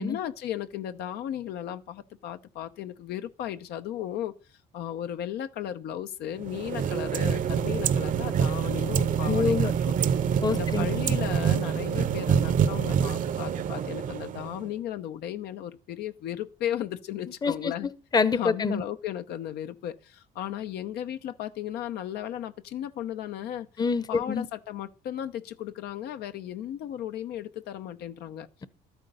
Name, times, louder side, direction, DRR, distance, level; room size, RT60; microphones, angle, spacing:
voice 1, 0.0-4.3 4.7-9.9 10.3-17.9 18.3-23.7 24.1-28.5, left 11 dB, 75° left, 0.8 m, -35 dB
sound 1, 6.4-14.7, right 8 dB, 50° right, 0.8 m, -26 dB
voice 2, 9.3-9.7 10.4-11.2 17.4-18.8 23.8-24.5, left 5 dB, 25° left, 0.8 m, -27 dB
12.5 x 9.1 x 5.5 m
cardioid pair, 110°, 17 cm